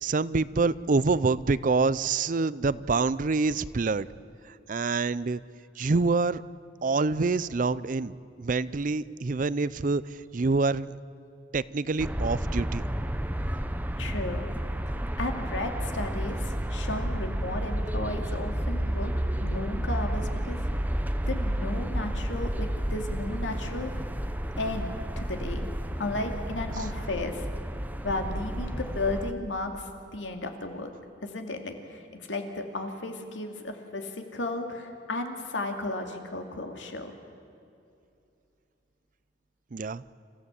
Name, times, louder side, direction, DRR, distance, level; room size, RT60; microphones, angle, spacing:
voice 1, 0.0-4.1 4.5-5.4 5.8-6.4 6.8-10.9 11.5-12.8 39.7-40.0, right 3 dB, 45° right, 18 dB, 0.5 m, -26 dB
sound 1, 12.0-29.3, equal, 10° right, 0.8 m, -31 dB
voice 2, 14.0-14.5 15.2-19.1 19.4-20.7 21.3-23.9 24.6-25.7 26.0-27.5 28.0-30.9 31.2-37.1, left 2 dB, 90° left, 4 dB, 2.4 m, -34 dB
27.5 x 15.0 x 8.3 m, 2.7 s
head